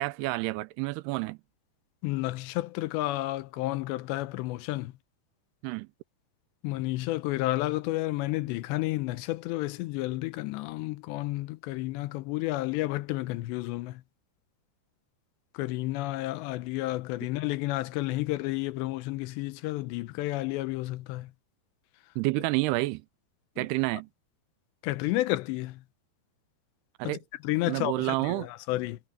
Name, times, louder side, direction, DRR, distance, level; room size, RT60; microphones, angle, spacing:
voice 1, 0.0-1.4 5.6-5.9 22.2-23.0 23.6-24.1 27.0-27.2 27.7-28.5, right 21 dB, 80° right, 2.4 m, -29 dB
voice 2, 2.0-4.9 6.6-14.0 15.5-21.3 23.6-23.7 24.8-25.8 27.0-29.0, left 18 dB, 90° left, 3.0 m, -31 dB
omnidirectional pair, 4.9 m